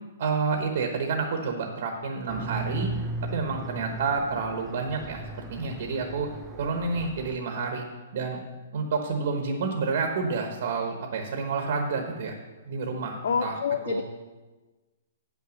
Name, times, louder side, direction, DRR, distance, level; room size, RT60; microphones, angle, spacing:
voice 1, 0.2-2.9 3.3-5.2 5.5-6.3 6.6-7.9 8.1-8.4 8.7-12.3 12.6-13.5 13.8-14.0, right 4 dB, 45° right, 3 dB, 1.0 m, -29 dB
sound 1, 2.3-7.4, right 2 dB, 5° right, 0.4 m, -37 dB
voice 2, 13.2-14.0, left 7 dB, 65° left, 9 dB, 0.5 m, -27 dB
8.5 x 5.9 x 6.3 m, 1.2 s
hypercardioid pair, 175°, 0 cm